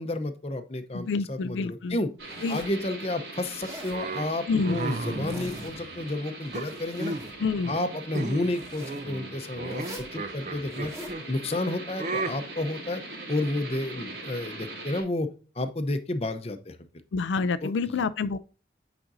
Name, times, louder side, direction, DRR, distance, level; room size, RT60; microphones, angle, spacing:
voice 1, 0.0-2.1 2.5-7.1 7.7-9.9 10.1-10.9 11.3-13.0 13.3-15.3 15.6-16.8 17.6-17.7, left 1 dB, 35° left, 0.7 m, -31 dB
voice 2, 0.9-2.0 2.4-2.6 4.5-4.8 7.4-7.7 17.1-18.4, left 4 dB, 90° left, 0.4 m, -27 dB
Zipper (clothing), 2.2-2.8 3.5-4.0 5.0-5.8 6.4-7.4 8.4-9.0 9.7-10.1 10.7-11.2, equal, 15° right, 2.1 m, -44 dB
sound 1, 2.2-15.0, right 2 dB, 85° right, 3.5 m, -41 dB
sound 2, 3.9-6.1 6.5-7.3 7.6-7.9 8.1-8.5 8.8-11.2 12.0-12.3, right 2 dB, 40° right, 0.7 m, -34 dB
8.7 x 5.1 x 2.6 m
head